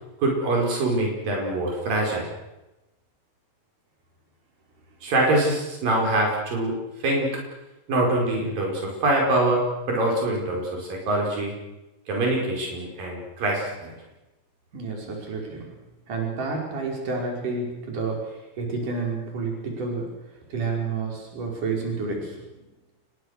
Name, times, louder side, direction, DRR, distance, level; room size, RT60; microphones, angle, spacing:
voice 1, 0.2-2.3 5.0-6.7 7.0-7.3 7.9-9.6 9.9-11.5 12.1-13.9, right 2 dB, 80° right, -1 dB, 6.8 m, -24 dB
voice 2, 14.7-15.7 16.1-20.1 20.5-22.4, right 4 dB, 65° right, 0 dB, 6.9 m, -30 dB
29.0 x 22.0 x 6.7 m, 1.0 s
omnidirectional pair, 3.9 m